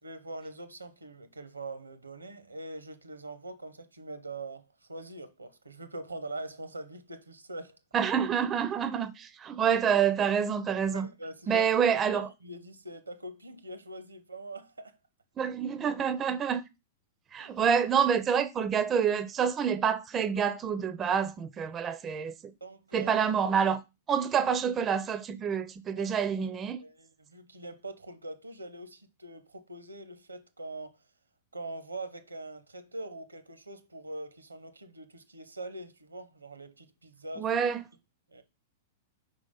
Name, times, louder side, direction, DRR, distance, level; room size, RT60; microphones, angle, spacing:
voice 1, 0.0-7.8 10.9-14.9 17.4-17.5 22.6-23.1 24.2-24.3 26.0-26.2 26.4-31.0 31.5-37.5 38.3-38.4, right 2 dB, 85° right, 0.8 m, -43 dB
voice 2, 7.9-11.1 11.5-12.3 15.4-16.7 17.3-22.5 22.9-23.8 24.1-26.8 37.4-37.8, right 7 dB, 25° right, 0.5 m, -27 dB
4.9 x 3.8 x 5.1 m
figure-of-eight pair, 100°, 0 cm